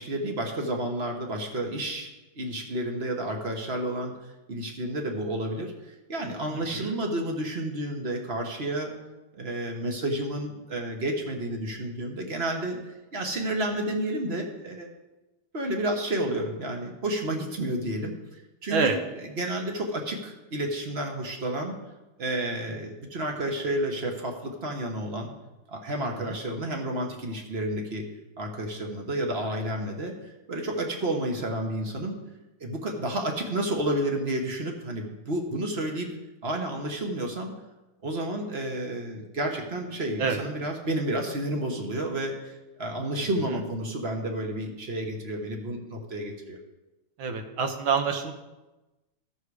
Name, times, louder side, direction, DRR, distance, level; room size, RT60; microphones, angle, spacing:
voice 1, 0.0-2.1 2.4-8.9 9.4-14.9 15.5-21.8 22.2-25.3 25.7-28.0 28.4-32.2 32.6-36.1 36.4-37.5 38.0-46.6, right 1 dB, 35° right, 2 dB, 1.2 m, -31 dB
voice 2, 6.5-7.0 18.7-19.0 26.0-26.4 40.2-40.4 47.2-48.3, right 5 dB, 75° right, 5 dB, 1.8 m, -27 dB
13.5 x 6.6 x 4.9 m, 1.1 s
omnidirectional pair, 2.3 m